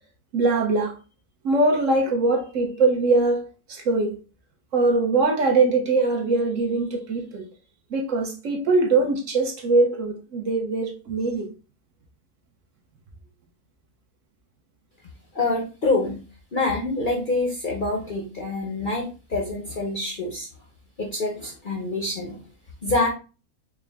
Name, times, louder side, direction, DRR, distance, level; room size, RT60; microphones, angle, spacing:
voice 1, 0.3-1.0 1.4-4.2 4.7-7.5 7.9-11.5, right 3 dB, 60° right, 1.1 m, -22 dB
voice 2, 15.3-16.2 16.5-20.5 21.0-22.4 22.8-23.1, left 2 dB, 45° left, 0.7 m, -26 dB
4.8 x 2.1 x 3.4 m
omnidirectional pair, 1.6 m